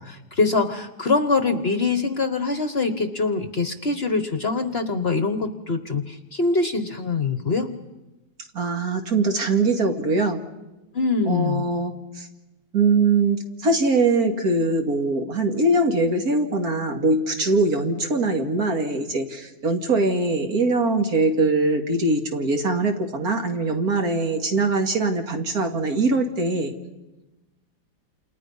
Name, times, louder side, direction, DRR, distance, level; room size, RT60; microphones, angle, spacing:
voice 1, 0.0-7.7 10.9-11.7, left 3 dB, 40° left, 10 dB, 1.2 m, -24 dB
voice 2, 8.5-10.4 11.3-12.3 12.7-26.7, right 3 dB, 60° right, 4 dB, 2.5 m, -22 dB
28.5 x 28.0 x 5.5 m, 1.0 s
omnidirectional pair, 1.8 m